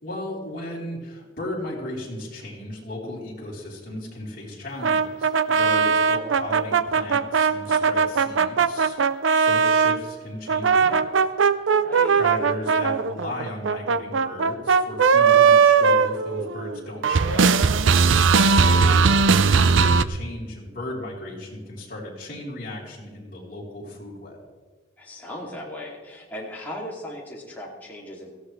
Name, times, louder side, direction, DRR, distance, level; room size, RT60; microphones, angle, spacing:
voice 1, 0.0-11.2 12.1-17.5 18.7-24.4, left 1 dB, 45° left, -4 dB, 3.9 m, -35 dB
sound 1, 4.8-10.0 10.5-16.8 17.0-20.0, right 5 dB, 80° right, 0.5 m, -19 dB
voice 2, 5.7-6.0 11.7-12.2 18.2-18.7 25.0-28.3, left 1 dB, 10° left, -4 dB, 2.7 m, -38 dB
17.5 x 15.0 x 3.3 m, 1.4 s
head